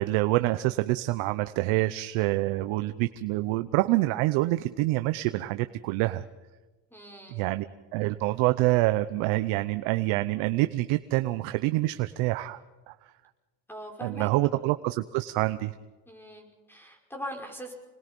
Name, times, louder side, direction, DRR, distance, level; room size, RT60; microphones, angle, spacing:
voice 1, 0.0-6.2 7.3-7.6 7.9-12.6 12.9-13.0 14.0-15.7, right 18 dB, 85° right, 11 dB, 0.9 m, -26 dB
voice 2, 6.9-7.4 13.7-14.6 16.1-17.7, equal, 5° left, 2 dB, 5.3 m, -41 dB
27.0 x 20.5 x 5.4 m, 1.2 s
cardioid pair, 120°, 46 cm